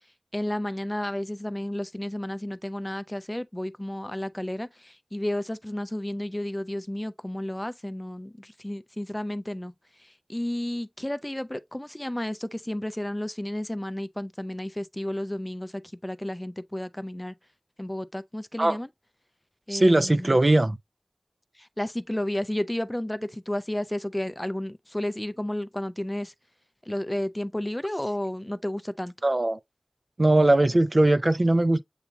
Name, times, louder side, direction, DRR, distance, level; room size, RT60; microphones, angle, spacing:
voice 1, 0.3-9.7 10.3-17.3 17.8-18.9 19.7-20.4 21.6-26.3 26.9-29.1, left 1 dB, 20° left, 0.4 m, -32 dB
voice 2, 19.7-20.8 29.2-29.6 30.2-31.8, right 1 dB, 50° right, 0.4 m, -20 dB
8.1 x 2.8 x 2.2 m
wide cardioid pair, 50°, 0 cm